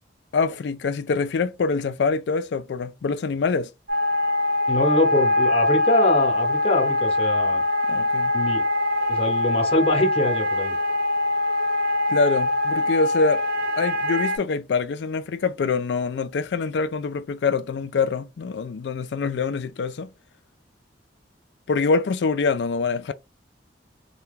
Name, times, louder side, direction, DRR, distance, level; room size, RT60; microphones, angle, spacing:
voice 1, 0.3-3.7 7.9-8.3 12.1-13.4 13.8-20.1 21.7-23.1, left 4 dB, 70° left, 0.4 m, -25 dB
sound 1, 3.9-14.4, left 2 dB, 65° right, 0.9 m, -23 dB
voice 2, 4.7-7.6 8.3-8.6 9.1-10.8, left 1 dB, 35° left, 0.8 m, -23 dB
2.8 x 2.2 x 3.4 m
head